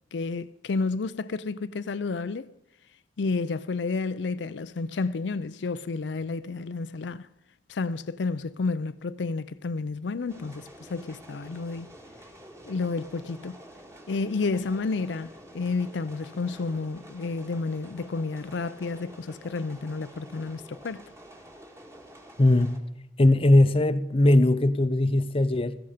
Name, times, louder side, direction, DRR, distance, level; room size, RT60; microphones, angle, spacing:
voice 1, 0.1-2.5 3.2-7.3 7.7-11.9 12.6-13.6 14.1-21.1, left 4 dB, 85° left, 0.5 m, -31 dB
sound 1, 10.3-22.8, right 1 dB, 15° right, 1.7 m, -49 dB
voice 2, 22.4-22.7 23.2-25.8, left 1 dB, 30° left, 0.6 m, -20 dB
16.0 x 14.0 x 5.0 m
head